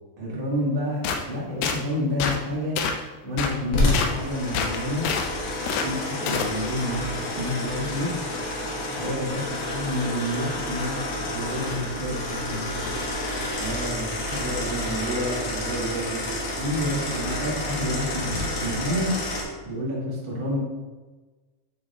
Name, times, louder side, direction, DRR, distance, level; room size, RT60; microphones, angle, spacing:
voice 1, 0.2-2.8 3.2-5.1 5.7-8.1 8.9-12.7 16.6-19.1 19.6-20.6, left 1 dB, 30° right, -6 dB, 1.0 m, -29 dB
sound 1, 1.0-1.2 1.6-1.8 2.2-2.4 2.8-3.0 3.4-3.6 3.9-4.1 4.5-5.3 5.7-5.9 6.3-6.5, left 6 dB, 85° left, 2.4 m, -26 dB
sound 2, 3.7-19.4, left 1 dB, 60° left, 2.0 m, -29 dB
voice 2, 13.6-16.2, right 1 dB, 75° right, -8 dB, 1.0 m, -31 dB
8.6 x 4.1 x 3.6 m, 1.3 s
omnidirectional pair, 4.0 m